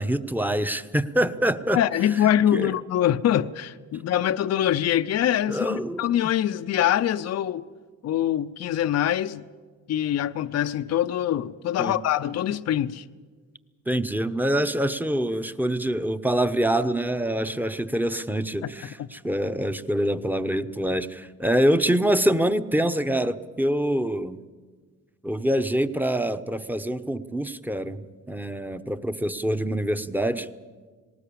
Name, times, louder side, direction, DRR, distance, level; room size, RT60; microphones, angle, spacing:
voice 1, 0.0-1.8 2.5-2.7 5.5-6.1 11.8-12.0 13.9-24.4 25.2-28.0 28.3-30.5, right 1 dB, 5° right, 10 dB, 1.0 m, -25 dB
voice 2, 1.7-7.6 8.0-9.4 9.9-13.0 19.0-19.1, left 11 dB, 55° left, 11 dB, 0.6 m, -24 dB
19.0 x 19.0 x 8.6 m, 1.5 s
cardioid pair, 90°, 30 cm